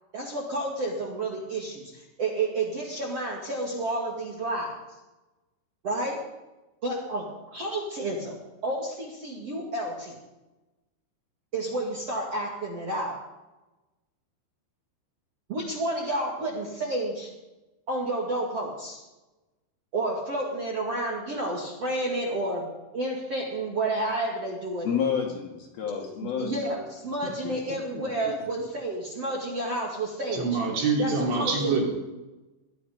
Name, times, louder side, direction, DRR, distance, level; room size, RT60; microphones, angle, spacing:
voice 1, 0.1-4.7 5.8-6.2 6.8-7.2 7.5-8.4 8.6-10.1 11.5-13.2 15.5-17.3 17.9-19.0 19.9-22.7 22.9-24.9 26.0-30.4 31.0-31.7, right 2 dB, 40° right, -3 dB, 2.5 m, -30 dB
voice 2, 24.8-26.5 27.2-27.6, left 7 dB, 60° left, 0 dB, 3.3 m, -29 dB
voice 3, 30.3-31.9, right 4 dB, 70° right, -1 dB, 5.5 m, -25 dB
20.0 x 12.0 x 5.3 m, 1.1 s
omnidirectional pair, 5.6 m